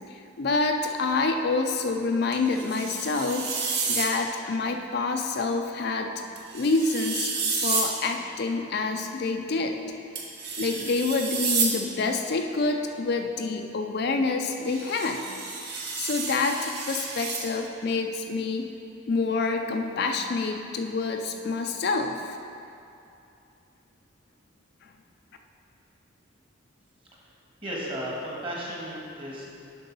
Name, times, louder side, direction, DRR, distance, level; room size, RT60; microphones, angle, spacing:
voice 1, 0.1-6.1 6.5-7.3 7.6-9.8 10.6-15.4 16.0-18.7 19.1-22.4, left 3 dB, 50° left, 4 dB, 0.4 m, -27 dB
sound 1, 2.3-4.1 6.4-7.9 10.2-11.7 14.5-17.5, right 4 dB, 55° right, 1.0 m, -30 dB
voice 2, 27.6-29.4, equal, 25° right, -4 dB, 1.5 m, -34 dB
7.8 x 5.4 x 5.3 m, 2.7 s
head